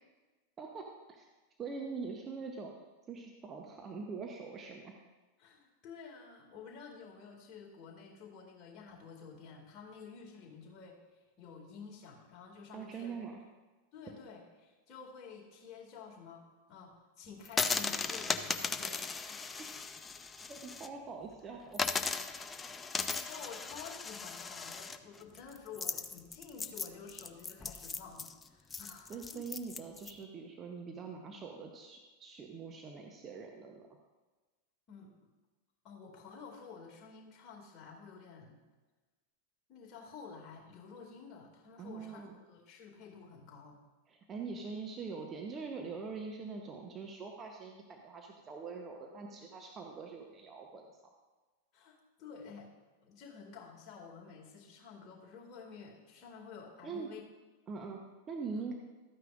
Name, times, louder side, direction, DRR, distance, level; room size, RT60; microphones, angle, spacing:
voice 1, 0.6-1.3 1.6-2.7 3.1-4.9 12.7-13.4 20.5-21.8 29.1-33.9 41.8-42.4 44.1-50.9 56.8-57.1 57.7-58.7, right 4 dB, 25° right, 2 dB, 0.9 m, -43 dB
voice 2, 5.4-11.0 11.4-13.2 13.9-19.4 22.8-29.5 34.9-35.1 35.8-38.6 39.7-43.8 51.7-52.7 53.0-57.2, left 5 dB, 30° left, -2 dB, 2.3 m, -51 dB
sound 1, 17.4-20.9 21.2-21.3 21.7-30.1, left 4 dB, 15° left, 0.4 m, -37 dB
13.0 x 9.1 x 2.5 m, 1.2 s
figure-of-eight pair, 90°, 0 cm